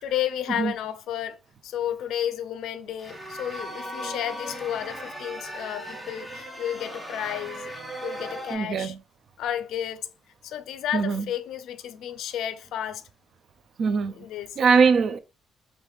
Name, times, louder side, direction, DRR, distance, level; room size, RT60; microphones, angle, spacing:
voice 1, 0.0-7.7 8.0-8.9 9.4-10.1 10.4-13.0 14.1-14.6, left 10 dB, 90° left, 0.4 m, -32 dB
sound 1, 3.0-8.5, equal, 5° right, 0.6 m, -37 dB
voice 2, 8.5-9.0 10.9-11.3 13.8-14.2 14.6-15.2, right 5 dB, 50° right, 0.3 m, -21 dB
3.4 x 2.5 x 3.0 m
cardioid pair, 160°, 0 cm